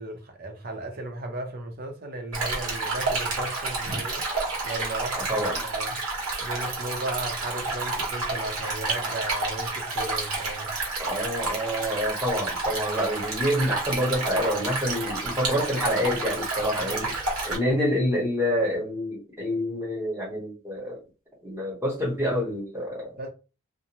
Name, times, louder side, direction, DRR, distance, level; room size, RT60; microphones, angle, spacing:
voice 1, 0.0-4.3 4.6-6.0 6.4-10.7 16.8-17.2 23.2-23.3, right 2 dB, 45° right, 0.6 m, -36 dB
Stream, 2.3-17.6, right 3 dB, 90° right, 1.1 m, -30 dB
voice 2, 5.1-5.6 11.0-17.1 17.4-21.0 21.4-23.1, equal, 10° right, 1.0 m, -27 dB
2.5 x 2.1 x 2.9 m
head